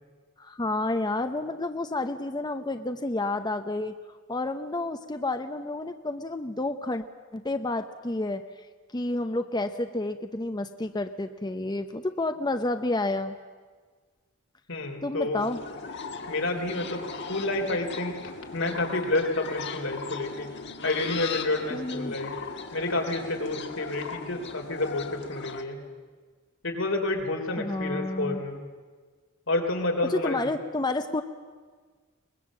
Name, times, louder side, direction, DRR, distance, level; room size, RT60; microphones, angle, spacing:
voice 1, 0.4-7.0 7.3-8.7 8.9-13.4 15.0-15.6 21.7-22.2 27.6-28.4 30.0-31.2, left 2 dB, 20° left, 8 dB, 0.7 m, -30 dB
voice 2, 14.7-15.4 16.3-20.5 20.8-22.3 22.7-25.8 26.6-28.6 29.5-30.4, left 2 dB, 85° left, 2 dB, 3.6 m, -29 dB
sound 1, 15.4-25.6, left 5 dB, 60° left, 1.8 m, -38 dB
23.0 x 20.5 x 7.5 m, 1.5 s
head